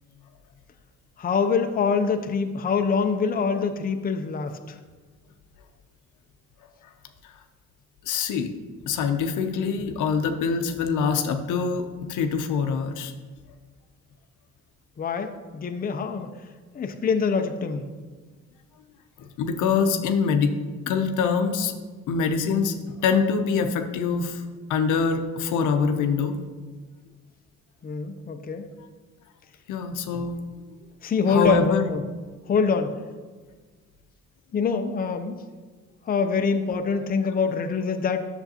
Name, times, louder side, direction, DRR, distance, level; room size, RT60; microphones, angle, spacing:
voice 1, 1.2-4.6 15.0-16.3 16.7-17.9 27.8-28.7 31.0-32.0 32.5-33.0 34.5-35.4 36.1-38.3, left 5 dB, 30° left, 7 dB, 0.5 m, -25 dB
voice 2, 8.0-8.5 8.9-13.1 19.2-20.5 20.9-21.7 22.1-22.7 23.0-24.4 24.7-26.4 29.7-30.4 31.3-31.9, left 5 dB, 80° left, 7 dB, 0.7 m, -24 dB
8.0 x 6.9 x 2.8 m, 1.4 s
cardioid pair, 90°, 30 cm